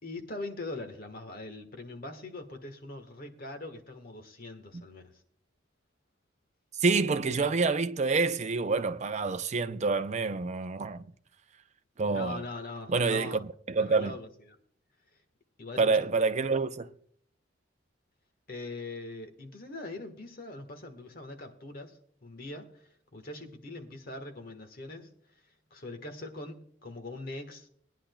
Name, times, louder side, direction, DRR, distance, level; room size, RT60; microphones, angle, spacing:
voice 1, 0.0-5.1 12.0-13.4 13.8-14.6 15.6-16.1 18.5-25.1 25.7-27.7, left 2 dB, 45° left, 1.4 m, -42 dB
voice 2, 6.8-11.1 12.0-12.4 12.9-14.1 15.8-16.9, right 4 dB, 35° right, 0.5 m, -27 dB
20.5 x 10.0 x 2.3 m
head